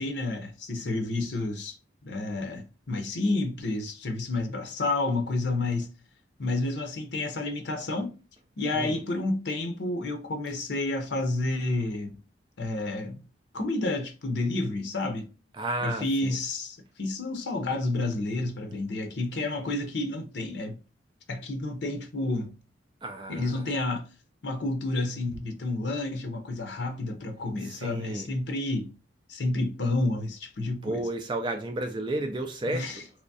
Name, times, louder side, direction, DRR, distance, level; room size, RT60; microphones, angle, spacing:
voice 1, 0.0-1.8 2.0-5.9 6.4-8.1 8.6-12.1 12.6-13.2 13.5-15.3 15.8-20.8 21.3-22.5 23.3-24.0 24.4-28.9 29.3-31.0 32.7-33.0, left 2 dB, 60° left, 0.7 m, -30 dB
voice 2, 15.5-16.4 23.0-23.7 27.6-28.3 30.8-33.1, right 2 dB, 25° right, 0.3 m, -32 dB
3.5 x 3.0 x 2.6 m
head